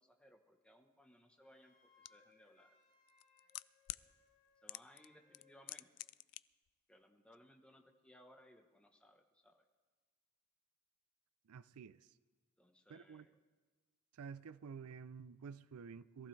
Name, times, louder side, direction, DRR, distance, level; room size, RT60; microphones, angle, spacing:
voice 1, 0.0-2.7 4.6-5.9 6.9-9.6 12.6-13.4, equal, 5° left, 1.0 m, -64 dB
Wind instrument woodwind instrument, 1.4-5.6, left 4 dB, 45° left, 4.4 m, -71 dB
sound 1, 2.0-2.1 3.1-4.0 4.7-5.1 5.3-6.4 6.7-6.8, left 18 dB, 85° left, 0.3 m, -46 dB
voice 2, 11.5-12.1 12.9-13.3 14.1-16.3, right 6 dB, 80° right, 0.4 m, -51 dB
22.0 x 14.5 x 3.3 m
head